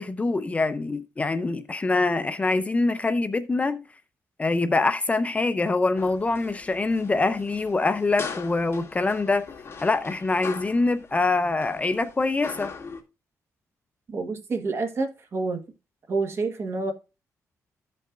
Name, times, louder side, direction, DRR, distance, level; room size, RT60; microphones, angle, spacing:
voice 1, 0.0-3.8 4.4-9.4 9.8-12.7, left 3 dB, 20° left, 0.5 m, -24 dB
sound 1, 6.0-13.0, left 5 dB, 40° left, 2.2 m, -41 dB
voice 2, 14.1-15.6 16.1-16.9, right 3 dB, 45° right, 1.3 m, -28 dB
15.0 x 5.4 x 2.4 m
cardioid pair, 125°, 6 cm